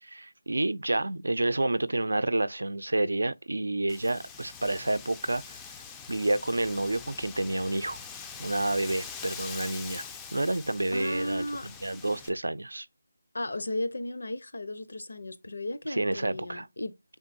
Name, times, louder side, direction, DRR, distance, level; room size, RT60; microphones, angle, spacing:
voice 1, 0.0-5.6 6.1-8.0 8.4-10.0 10.3-11.5 11.8-12.9 15.9-16.7, right 2 dB, 85° right, 0.4 m, -29 dB
Wind, 3.9-12.3, left 6 dB, 10° left, 0.3 m, -43 dB
voice 2, 10.9-11.7 13.3-17.0, left 1 dB, 75° left, 0.7 m, -35 dB
4.5 x 3.6 x 2.6 m
figure-of-eight pair, 165°, 0 cm